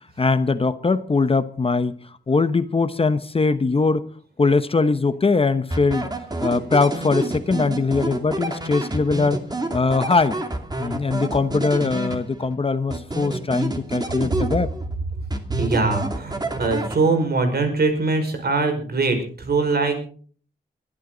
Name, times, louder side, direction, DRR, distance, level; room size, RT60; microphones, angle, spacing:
voice 1, 0.2-2.0 2.3-4.1 4.4-6.1 6.4-9.4 9.7-10.4 10.8-14.7, left 4 dB, 30° left, 1.0 m, -21 dB
sound 1, 5.7-12.5 12.9-14.9 15.3-17.3, right 2 dB, 20° right, 2.6 m, -29 dB
voice 2, 15.5-20.0, right 3 dB, 60° right, 5.3 m, -22 dB
22.5 x 12.5 x 4.0 m
wide cardioid pair, 145°, 18 cm